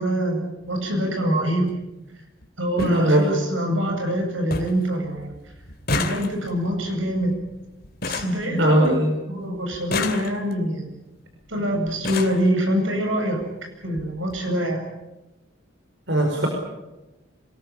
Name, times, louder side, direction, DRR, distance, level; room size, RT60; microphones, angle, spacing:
voice 1, 0.0-1.7 2.6-5.3 5.9-7.3 8.1-8.9 9.3-10.9 11.5-13.4 13.8-14.8, equal, 85° right, 3 dB, 7.9 m, -24 dB
sound 1, 0.6-0.9 2.1-2.2 2.4-2.5 2.8-3.0 3.4-3.9 4.2-4.3 4.5-4.9 5.2-9.1 9.7-10.7 11.5-11.6 11.9-12.5 13.4-13.5 13.8-14.0 14.3-14.4, left 3 dB, 50° left, 2.5 m, -31 dB
voice 2, 2.8-3.3 8.6-9.1 16.1-16.5, right 1 dB, 65° right, 2 dB, 5.3 m, -19 dB
26.5 x 20.0 x 9.0 m, 0.99 s
head